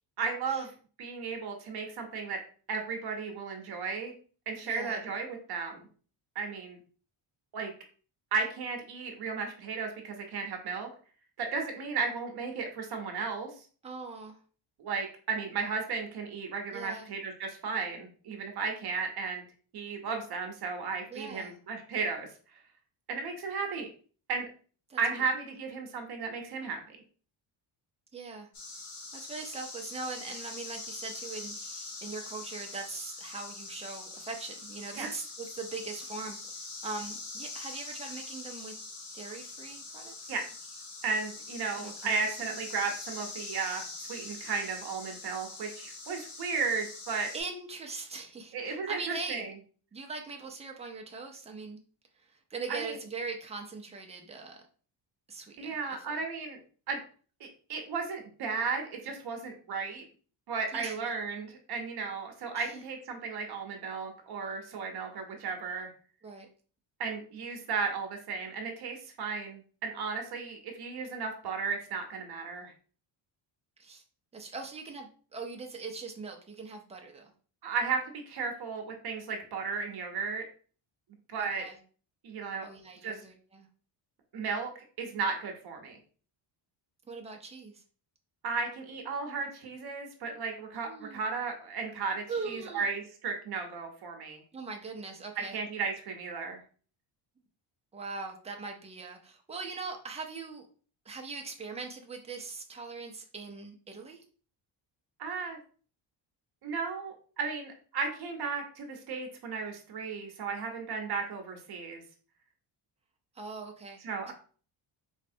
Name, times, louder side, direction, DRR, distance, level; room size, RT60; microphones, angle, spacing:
voice 1, 0.2-0.7 1.0-2.4 2.7-4.1 4.5-5.8 6.3-6.8 7.5-7.7 8.3-10.9 11.4-13.5 14.8-19.4 19.7-22.3 23.1-23.9 24.3-24.4 25.0-27.0 35.0-35.1 40.3-40.4 41.0-47.3 48.5-49.5 52.7-52.9 55.6-56.6 56.9-57.0 57.4-60.0 60.5-65.9 67.0-72.7 77.6-80.4 81.3-81.6 82.2-82.7 83.0-83.2 84.3-86.0 88.4-94.4 95.5-96.6 105.2-105.6 106.6-112.0 114.0-114.3, right 5 dB, 50° right, 3 dB, 0.8 m, -34 dB
voice 2, 4.6-5.0 13.8-14.4 16.7-17.1 21.1-21.5 24.9-25.0 28.1-28.5 29.1-38.8 39.1-40.3 41.8-42.5 47.3-49.5 49.9-51.8 52.2-54.6 55.3-55.8 60.7-61.0 62.5-62.8 66.2-66.5 73.8-74.0 74.3-77.3 81.4-81.8 82.6-83.7 87.1-87.8 90.9-91.2 92.3-92.8 94.5-95.6 97.9-100.7 101.0-104.2 113.3-114.3, right 4 dB, 15° right, 1 dB, 0.4 m, -41 dB
sound 1, 28.5-47.4, left 3 dB, 55° left, 1.1 m, -43 dB
4.2 x 3.2 x 2.6 m, 0.41 s
cardioid pair, 165°, 49 cm